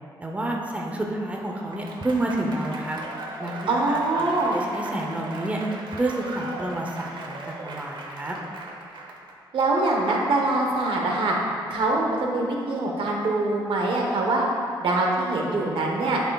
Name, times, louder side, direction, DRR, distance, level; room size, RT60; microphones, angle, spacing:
voice 1, 0.2-3.0 3.4-5.6 5.9-8.3, right 1 dB, 15° right, -1 dB, 0.7 m, -29 dB
Applause / Crowd, 1.2-9.3, right 2 dB, 65° right, 0.9 m, -38 dB
voice 2, 3.7-4.6 9.5-11.4 11.7-14.5 14.8-16.2, right 2 dB, 90° right, -1 dB, 1.1 m, -24 dB
10.5 x 5.8 x 2.3 m, 2.5 s
wide cardioid pair, 135°, 9 cm